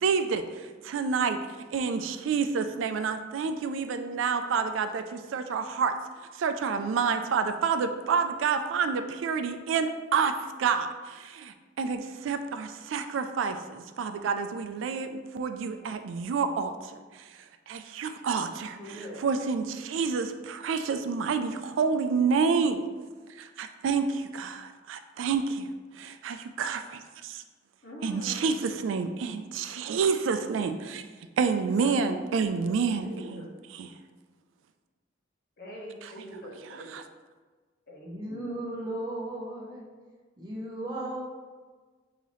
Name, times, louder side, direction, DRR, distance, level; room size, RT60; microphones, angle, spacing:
voice 1, 0.0-1.4 1.7-5.9 6.4-10.3 10.6-22.8 23.3-25.7 26.0-27.4 28.0-31.1 31.4-33.5 33.7-33.9 36.0-36.1 36.9-37.0, right 5 dB, 85° right, 8 dB, 0.3 m, -29 dB
voice 2, 18.8-19.2 27.8-28.5 31.8-33.5 35.6-36.9 37.9-38.7, equal, 50° left, -3 dB, 1.0 m, -43 dB
voice 3, 38.0-39.9 40.4-41.2, right 1 dB, 20° right, -3 dB, 0.7 m, -35 dB
5.5 x 2.8 x 3.0 m, 1.4 s
head